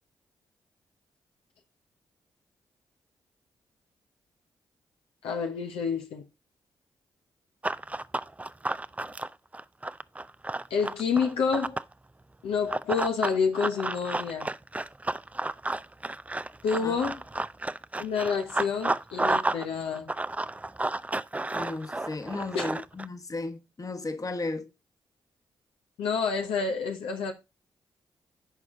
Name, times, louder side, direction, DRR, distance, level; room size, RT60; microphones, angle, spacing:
voice 1, 5.2-6.2 10.7-11.8 12.4-14.5 16.6-17.2 18.0-20.1 22.5-22.6 26.0-27.3, left 5 dB, 75° left, 1.0 m, -28 dB
Run, 7.6-11.9 12.7-19.7 19.9-23.1, right 2 dB, 15° right, 0.5 m, -31 dB
voice 2, 21.5-24.7, left 2 dB, 35° left, 1.4 m, -34 dB
10.5 x 4.6 x 3.7 m
hypercardioid pair, 40°, 10 cm